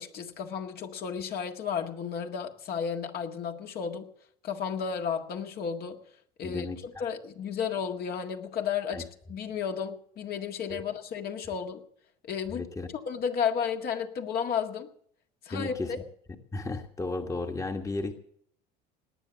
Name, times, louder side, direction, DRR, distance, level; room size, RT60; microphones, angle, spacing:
voice 1, 0.0-4.1 4.4-6.0 6.4-11.8 12.2-12.7 12.9-14.9 15.4-16.0, left 7 dB, 50° left, 3 dB, 1.8 m, -33 dB
voice 2, 6.4-6.8 8.9-9.0 10.7-10.8 12.5-12.9 15.5-15.9 16.5-18.1, left 3 dB, 15° left, 5 dB, 1.5 m, -34 dB
19.0 x 9.2 x 7.1 m, 0.65 s
supercardioid pair, 105°, 21 cm